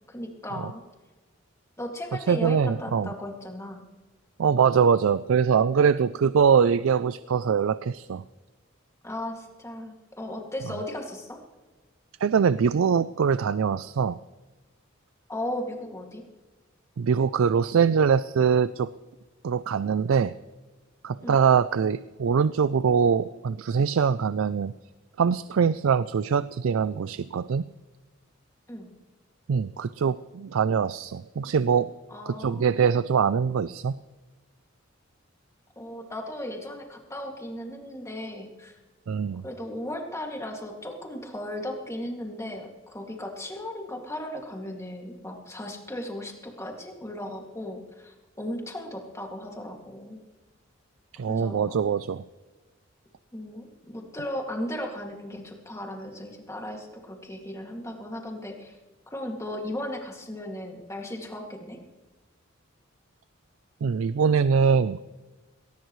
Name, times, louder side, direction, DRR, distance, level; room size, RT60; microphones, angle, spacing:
voice 1, 0.1-0.8 1.8-3.8 9.0-11.4 15.3-16.2 21.2-21.4 28.7-28.9 32.1-32.7 35.8-38.8 39.4-50.2 51.3-51.8 53.3-58.8 59.1-61.8, left 1 dB, 15° left, 1 dB, 2.3 m, -36 dB
voice 2, 2.3-3.1 4.4-8.2 12.2-14.2 17.0-18.9 19.4-20.3 21.0-24.7 25.2-27.6 29.5-31.9 32.3-34.0 39.1-39.4 51.1-52.2 63.8-65.1, right 6 dB, 80° right, 16 dB, 0.4 m, -23 dB
19.5 x 18.5 x 3.2 m, 1.3 s
head